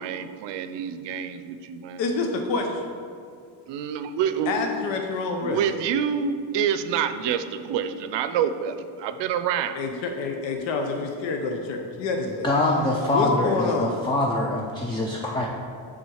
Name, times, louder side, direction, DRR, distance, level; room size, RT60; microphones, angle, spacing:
voice 1, 0.0-2.0 3.7-4.7 5.4-9.8, right 8 dB, 70° right, 10 dB, 0.6 m, -27 dB
voice 2, 2.0-2.9 4.5-5.6 9.7-12.5 13.1-14.0, left 3 dB, 75° left, 3 dB, 0.9 m, -27 dB
voice 3, 12.4-15.5, left 2 dB, 10° left, -2 dB, 0.4 m, -24 dB
7.3 x 3.7 x 6.3 m, 2.3 s
cardioid pair, 145°, 44 cm